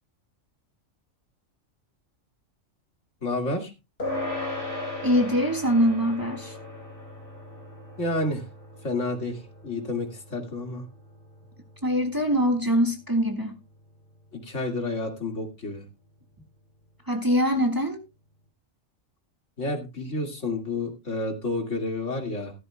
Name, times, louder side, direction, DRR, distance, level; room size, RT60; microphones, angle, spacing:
voice 1, 3.2-3.7 8.0-8.4 8.8-10.8 14.3-15.8 19.6-22.5, left 2 dB, 70° left, 2.5 m, -30 dB
sound 1, 4.0-13.7, left 2 dB, 45° left, 5.0 m, -38 dB
voice 2, 5.0-6.6 11.8-13.6 17.1-18.0, equal, 15° right, 1.8 m, -23 dB
15.0 x 13.0 x 2.2 m
omnidirectional pair, 1.3 m